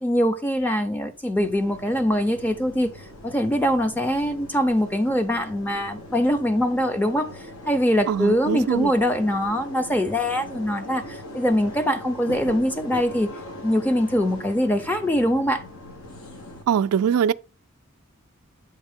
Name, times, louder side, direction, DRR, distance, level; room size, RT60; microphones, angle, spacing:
voice 1, 0.0-2.9 3.2-7.3 7.7-13.3 13.6-15.6, equal, 10° left, 0.5 m, -23 dB
sound 1, 1.4-16.6, left 1 dB, 85° left, 1.3 m, -40 dB
voice 2, 8.1-8.9 16.7-17.3, right 8 dB, 90° right, 0.3 m, -22 dB
7.9 x 3.7 x 3.5 m
head